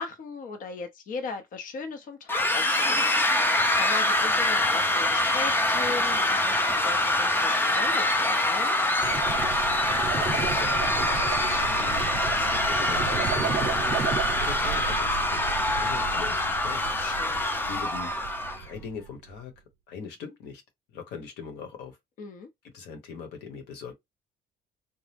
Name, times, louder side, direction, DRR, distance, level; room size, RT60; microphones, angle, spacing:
voice 1, 0.0-3.1 3.5-8.8 17.0-17.5 22.2-22.5, left 4 dB, 50° left, 0.8 m, -38 dB
sound 1, 2.3-18.6, left 1 dB, 10° left, 0.5 m, -25 dB
sound 2, 9.0-14.8, right 7 dB, 45° right, 0.8 m, -33 dB
sound 3, 9.0-19.6, right 8 dB, 85° right, 0.4 m, -38 dB
voice 2, 9.9-13.8 14.4-16.9 17.7-18.1 18.6-19.5 19.9-20.6 20.9-22.0 22.6-23.9, left 6 dB, 85° left, 1.1 m, -41 dB
2.9 x 2.1 x 3.4 m
cardioid pair, 110°, 17 cm